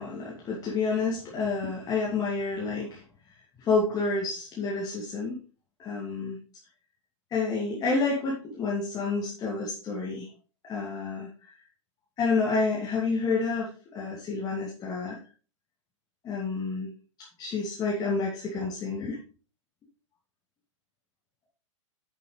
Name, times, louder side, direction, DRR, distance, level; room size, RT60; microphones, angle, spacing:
voice 1, 0.0-3.0 3.6-5.4 5.8-6.4 7.3-10.3 10.6-11.3 12.2-15.2 16.2-16.9 17.4-19.2, left 4 dB, 25° left, -4 dB, 2.6 m, -29 dB
9.3 x 7.5 x 3.3 m, 0.37 s
figure-of-eight pair, 100°, 16 cm